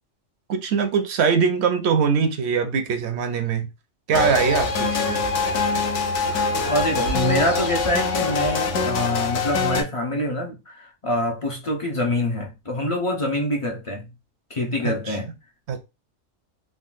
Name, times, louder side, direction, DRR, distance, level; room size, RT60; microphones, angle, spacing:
voice 1, 0.5-3.7 4.1-5.2 14.8-15.2 15.7-15.8, right 6 dB, 65° right, 0.7 m, -22 dB
sound 1, 4.1-9.8, left 4 dB, 65° left, 0.9 m, -24 dB
voice 2, 6.6-14.1 14.5-15.3, left 1 dB, 45° left, 0.4 m, -25 dB
3.7 x 2.2 x 2.4 m
omnidirectional pair, 1.4 m